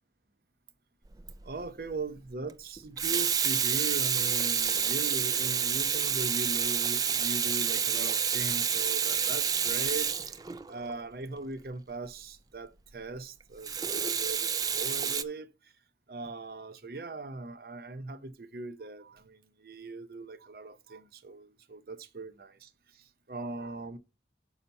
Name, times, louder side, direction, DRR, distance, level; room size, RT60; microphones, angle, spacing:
Water tap faucet / Sink (filling or washing), 1.2-1.4 2.8-11.0 13.6-15.2, right 7 dB, 20° right, 0.3 m, -29 dB
voice 1, 1.4-10.3 10.7-15.7 16.1-24.0, right 2 dB, 55° right, 0.7 m, -40 dB
5.7 x 5.5 x 5.2 m
head